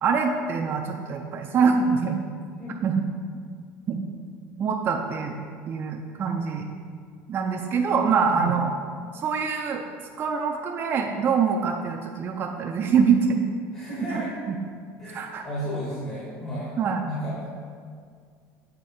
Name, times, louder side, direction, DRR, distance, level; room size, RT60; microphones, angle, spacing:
voice 1, 0.0-2.2 2.8-2.9 3.9-4.0 4.6-5.3 5.7-6.7 7.3-8.7 9.1-9.8 10.2-13.4 14.1-14.2 14.5-14.6 15.1-15.5 16.8-17.0, right 6 dB, 35° right, 2 dB, 0.5 m, -24 dB
voice 2, 13.7-14.3 15.0-16.7 17.1-17.5, equal, 30° left, -6 dB, 1.7 m, -33 dB
8.0 x 3.7 x 4.2 m, 2.1 s
supercardioid pair, 120°, 6 cm